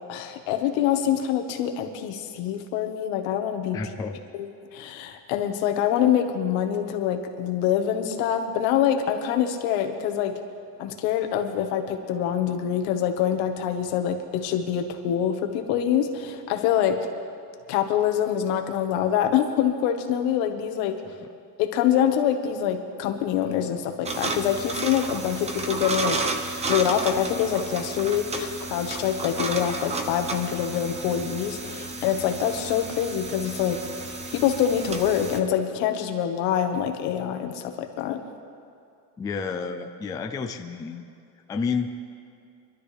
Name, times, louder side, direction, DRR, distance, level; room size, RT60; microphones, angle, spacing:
voice 1, 0.1-3.8 4.3-4.5 4.7-10.4 10.8-17.1 17.7-21.0 21.6-26.2 26.7-33.8 34.3-38.2, left 9 dB, 85° left, 5 dB, 1.5 m, -25 dB
voice 2, 3.7-4.2 21.0-21.3 39.2-41.0 41.5-41.9, left 5 dB, 10° left, 5 dB, 0.3 m, -30 dB
sound 1, 24.1-35.4, right 3 dB, 15° right, 0.7 m, -32 dB
24.0 x 12.5 x 3.4 m, 2.5 s
cardioid pair, 165°, 42 cm